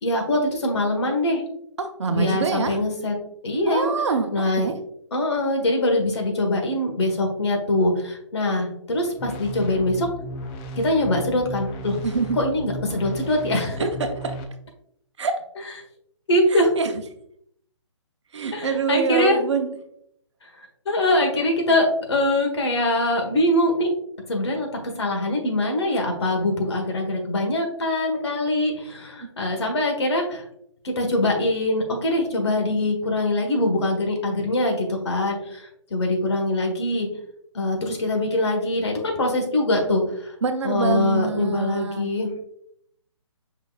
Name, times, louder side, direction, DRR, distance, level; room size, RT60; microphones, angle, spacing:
voice 1, 0.0-1.4 2.1-3.1 3.4-3.9 4.3-4.7 5.1-10.1 10.8-12.0 12.3-13.9 16.3-16.7 18.5-19.4 20.4-20.5 20.8-23.9 24.3-24.7 25.0-30.4 30.8-37.1 37.5-40.3 40.6-42.4, left 1 dB, 60° left, 2 dB, 1.5 m, -23 dB
voice 2, 1.8-2.8 3.7-4.7 12.0-12.4 13.8-14.3 15.2-15.4 16.5-16.9 18.3-19.8 40.4-42.1, right 5 dB, 65° right, 7 dB, 0.8 m, -25 dB
sound 1, 9.2-14.4, equal, 15° left, 0.4 m, -35 dB
5.5 x 3.8 x 2.4 m, 0.71 s
hypercardioid pair, 145°, 16 cm